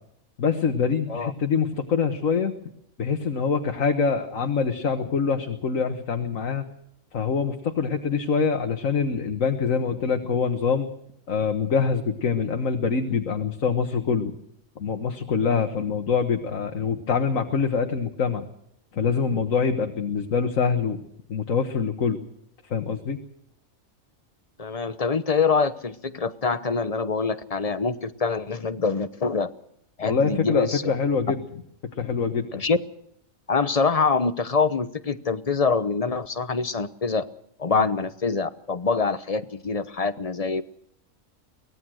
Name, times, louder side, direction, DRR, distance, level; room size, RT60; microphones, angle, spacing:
voice 1, 0.4-2.5 3.0-6.6 7.1-10.9 11.3-14.3 14.8-18.4 18.9-21.0 21.3-22.2 22.6-23.2 30.0-31.4 31.9-32.6 37.7-37.9, left 5 dB, 75° left, 6 dB, 1.8 m, -25 dB
voice 2, 24.6-29.5 30.0-30.8 32.5-32.8 33.5-37.3 37.6-40.6, left 4 dB, 30° left, 13 dB, 0.9 m, -25 dB
24.0 x 18.5 x 6.4 m, 0.73 s
omnidirectional pair, 1.4 m